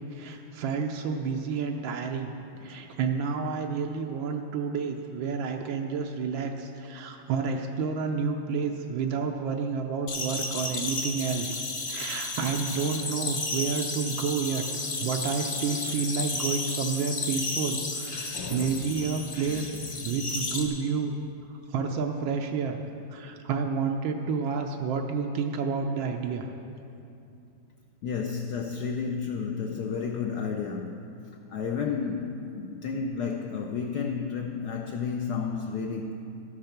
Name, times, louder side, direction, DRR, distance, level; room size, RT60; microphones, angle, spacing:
voice 1, 0.1-2.3 2.6-11.6 11.9-14.6 15.0-19.7 20.0-21.1 21.7-22.8 23.1-26.5, right 5 dB, 80° right, 3 dB, 1.4 m, -30 dB
sound 1, 10.1-20.6, left 3 dB, 40° left, 1.1 m, -33 dB
voice 2, 18.3-19.0 19.5-20.0 20.4-20.6 28.0-31.0 31.5-36.1, left 5 dB, 70° left, 2 dB, 1.1 m, -32 dB
13.0 x 6.7 x 5.8 m, 2.7 s
omnidirectional pair, 2.1 m